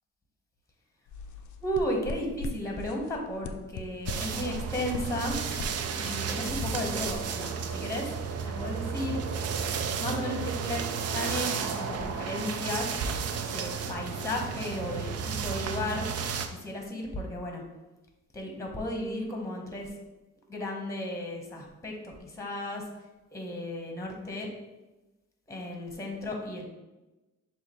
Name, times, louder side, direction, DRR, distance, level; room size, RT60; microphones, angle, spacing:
sound 1, 1.1-7.7, left 3 dB, 75° left, 0.5 m, -41 dB
voice 1, 1.6-5.4 6.0-8.1 8.4-9.2 10.0-13.0 13.5-16.1 16.5-17.6 18.3-19.9 20.5-22.9 23.3-24.5 25.5-26.6, left 1 dB, 10° left, 1 dB, 1.0 m, -34 dB
sound 2, 4.1-16.5, right 6 dB, 55° right, 0.5 m, -33 dB
6.5 x 2.6 x 3.0 m, 1.1 s
cardioid pair, 90°, 30 cm